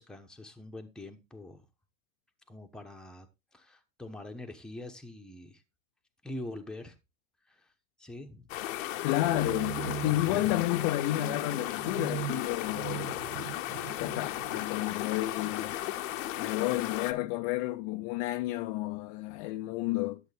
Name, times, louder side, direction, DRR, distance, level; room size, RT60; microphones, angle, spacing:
voice 1, 0.0-1.6 2.5-3.3 3.5-5.6 6.2-6.9 7.5-7.6 8.0-8.5 10.1-10.6, left 1 dB, ahead, 0.9 m, -44 dB
sound 1, 8.5-17.1, left 14 dB, 75° left, 0.9 m, -36 dB
voice 2, 9.0-13.2 14.0-15.8 16.4-20.2, left 17 dB, 45° left, 0.5 m, -31 dB
sound 2, 9.2-15.8, right 16 dB, 40° right, 0.6 m, -41 dB
11.0 x 7.2 x 3.4 m
supercardioid pair, 140°, 40 cm